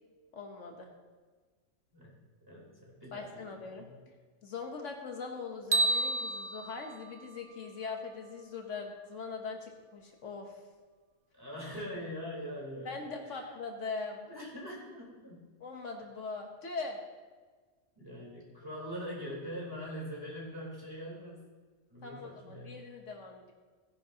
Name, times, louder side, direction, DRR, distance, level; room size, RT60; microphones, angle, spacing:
voice 1, 0.3-0.9 3.1-4.1 4.4-10.6 12.8-14.3 15.6-17.0 22.0-23.5, left 4 dB, 70° left, 2 dB, 1.4 m, -41 dB
voice 2, 2.5-3.9 11.3-13.4 14.2-15.5 18.0-21.4 21.9-22.8, equal, 15° right, -5 dB, 3.7 m, -43 dB
sound 1, 5.7-8.0, right 2 dB, 45° right, 0.7 m, -32 dB
15.5 x 10.5 x 2.8 m, 1.4 s
omnidirectional pair, 1.3 m